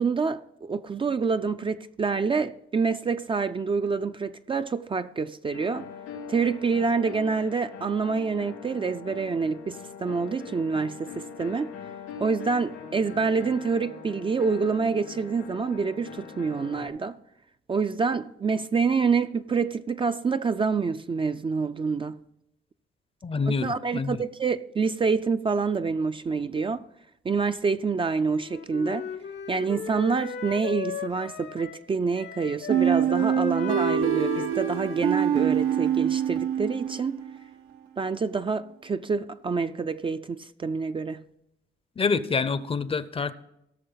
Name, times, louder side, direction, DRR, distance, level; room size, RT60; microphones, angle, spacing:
voice 1, 0.0-5.9 6.3-11.7 12.2-17.2 17.7-22.2 23.5-26.8 27.2-29.1 29.5-37.2 38.0-41.2, right 5 dB, 25° right, 0.4 m, -27 dB
sound 1, 5.5-16.9, left 6 dB, 90° left, 3.5 m, -42 dB
voice 2, 23.2-24.2 42.0-43.3, left 4 dB, 30° left, 0.6 m, -27 dB
Wind instrument woodwind instrument, 28.3-31.9 32.1-36.1, left 7 dB, 65° left, 0.8 m, -37 dB
sound 2, 32.7-37.4, right 10 dB, 90° right, 1.0 m, -25 dB
16.5 x 6.5 x 3.9 m
cardioid pair, 90°, 20 cm